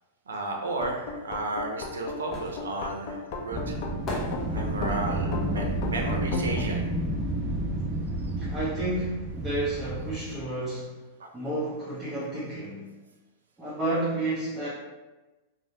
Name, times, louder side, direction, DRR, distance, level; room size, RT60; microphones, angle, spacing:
voice 1, 0.3-3.8 4.5-6.9, right 2 dB, 90° right, 2 dB, 0.5 m, -33 dB
sound 1, 0.8-6.7, left 4 dB, 55° left, 0.5 m, -35 dB
sound 2, 1.7-7.3 7.6-9.2 9.4-9.5, left 1 dB, 30° left, 0.8 m, -41 dB
Wind, 3.5-10.5, right 1 dB, 30° right, 0.5 m, -31 dB
voice 2, 8.4-11.0 11.3-12.9 13.6-14.7, right 2 dB, 10° right, -11 dB, 0.8 m, -31 dB
3.2 x 2.0 x 2.7 m, 1.2 s
hypercardioid pair, 115°, 0 cm